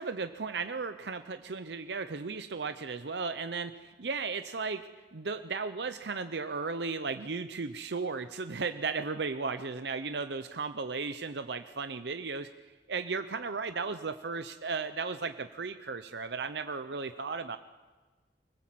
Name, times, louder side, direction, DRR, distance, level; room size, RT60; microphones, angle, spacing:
voice 1, 0.0-12.5 12.9-17.6, right 4 dB, 75° right, 10 dB, 0.7 m, -35 dB
25.0 x 20.0 x 7.6 m, 1.3 s
head